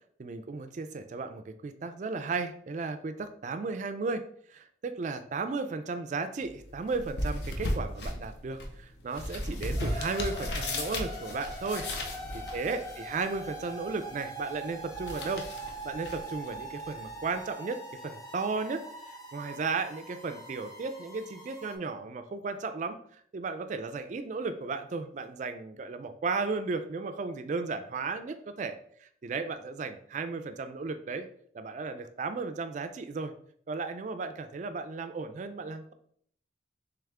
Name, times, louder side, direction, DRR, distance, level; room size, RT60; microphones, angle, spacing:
voice 1, 0.2-11.9 12.3-15.5 15.8-18.9 19.3-31.3 31.5-33.3 33.7-35.9, right 4 dB, 40° right, 8 dB, 0.3 m, -35 dB
sound 1, 6.4-17.4, left 1 dB, 70° left, 0.7 m, -37 dB
sound 2, 9.8-21.8, right 1 dB, 20° left, 0.6 m, -43 dB
3.4 x 3.3 x 3.5 m, 0.63 s
head